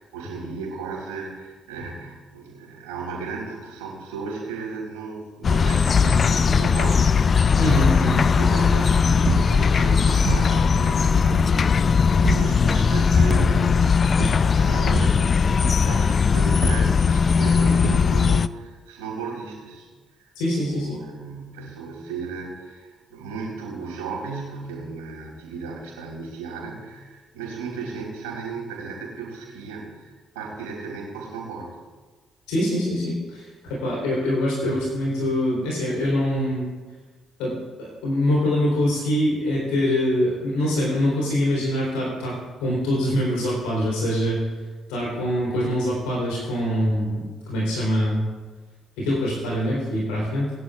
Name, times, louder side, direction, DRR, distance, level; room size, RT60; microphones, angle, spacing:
voice 1, 0.0-7.7 8.3-14.0 14.2-19.9 20.2-31.8, right 4 dB, 75° right, -3 dB, 4.2 m, -35 dB
sound 1, 5.4-18.5, left 5 dB, 45° left, 0.4 m, -19 dB
voice 2, 7.6-8.2 20.4-21.0 32.5-33.5 33.8-36.7 37.4-44.4 44.9-48.2 49.0-50.5, left 1 dB, 70° left, -5 dB, 3.7 m, -24 dB
sound 2, 9.3-9.9 10.2-10.8 11.3-11.7 12.2-12.8 13.4-13.9 14.2-16.1 16.6-17.4 17.8-18.4, right 7 dB, 60° right, 1.0 m, -32 dB
21.5 x 11.0 x 2.5 m, 1.3 s
figure-of-eight pair, 45°, 0 cm